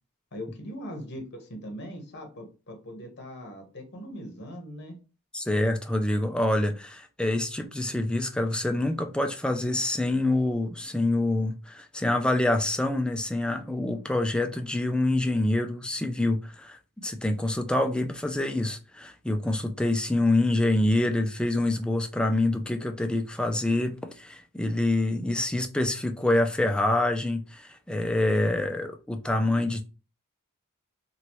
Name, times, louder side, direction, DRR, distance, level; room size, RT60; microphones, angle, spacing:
voice 1, 0.3-4.9 19.7-19.8, equal, 50° left, 1.0 m, -40 dB
voice 2, 5.3-29.8, left 1 dB, 5° left, 0.3 m, -26 dB
3.0 x 2.5 x 3.0 m
head